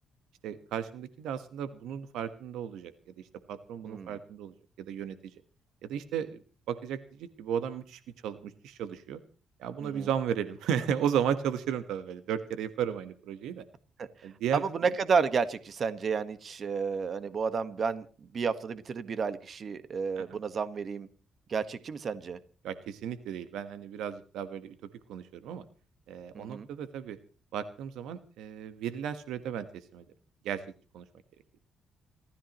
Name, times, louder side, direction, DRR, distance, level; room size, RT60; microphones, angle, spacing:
voice 1, 0.4-5.3 5.8-6.4 6.7-9.2 9.6-13.6 14.2-14.6 20.2-20.4 22.6-24.7 25.1-25.6 26.1-27.2 27.5-30.0 30.4-30.6 30.9-31.1, right 8 dB, 85° right, 11 dB, 1.3 m, -34 dB
voice 2, 14.5-18.0 18.3-21.1 21.5-22.4 26.3-26.7, right 5 dB, 50° right, 12 dB, 1.4 m, -31 dB
29.0 x 14.0 x 3.1 m, 0.38 s
cardioid pair, 90°, 0 cm